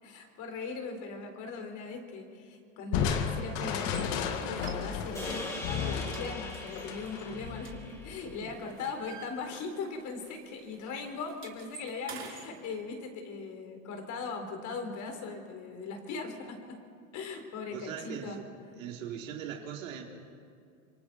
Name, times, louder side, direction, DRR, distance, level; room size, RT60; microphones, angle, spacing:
voice 1, 0.0-16.8 17.1-18.4, left 4 dB, 50° left, 4 dB, 4.0 m, -39 dB
Crushing, 2.9-8.3, left 7 dB, 70° left, 2.2 m, -33 dB
sound 1, 3.8-4.1 4.6-5.3 5.6-5.8 6.1-8.2 8.5-10.0 10.2-10.4 10.7-12.5, right 6 dB, 30° right, 3.3 m, -48 dB
sound 2, 5.1-9.6, equal, 5° left, 3.6 m, -43 dB
voice 2, 17.7-18.4 18.8-20.0, right 9 dB, 90° right, 1 dB, 3.3 m, -40 dB
27.0 x 23.5 x 4.4 m, 2.3 s
supercardioid pair, 105°, 39 cm